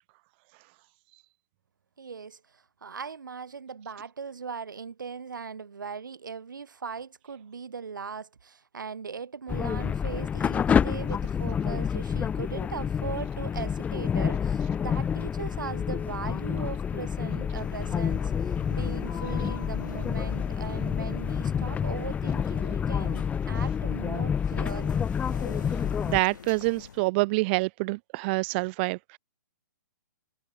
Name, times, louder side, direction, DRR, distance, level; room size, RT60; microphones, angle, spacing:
voice 1, 2.0-25.1, right 5 dB, 85° right, 6.7 m, -39 dB
sound 1, 9.5-26.2, left 7 dB, 15° left, 2.1 m, -28 dB
sound 2, 17.5-27.0, left 7 dB, 75° left, 7.3 m, -46 dB
voice 2, 26.1-29.2, right 26 dB, 35° right, 0.6 m, -26 dB
hypercardioid pair, 135°, 10 cm